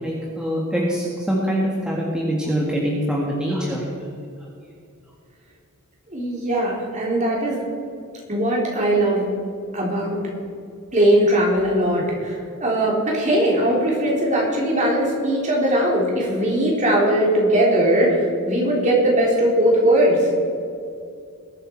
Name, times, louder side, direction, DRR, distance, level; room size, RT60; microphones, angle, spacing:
voice 1, 0.0-3.8, equal, 5° right, -4 dB, 1.8 m, -24 dB
voice 2, 6.1-7.6 8.3-9.2 9.7-10.2 10.9-20.3, right 1 dB, 35° right, -2 dB, 3.4 m, -19 dB
21.0 x 8.5 x 4.5 m, 2.4 s
head